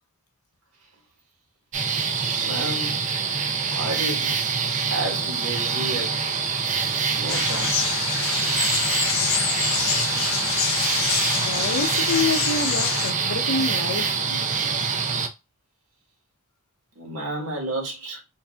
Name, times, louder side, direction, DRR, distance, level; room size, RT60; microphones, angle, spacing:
sound 1, 1.7-15.3, right 5 dB, 35° right, 0.5 m, -25 dB
voice 1, 2.4-3.2 3.7-4.4 4.9-6.3 6.8-8.0 14.3-14.4 16.9-18.2, right 1 dB, 80° right, 1.6 m, -32 dB
sound 2, 7.3-13.1, left 8 dB, 60° left, 0.5 m, -26 dB
voice 2, 11.3-14.3, left 3 dB, 85° left, 0.8 m, -27 dB
4.6 x 2.7 x 2.3 m
head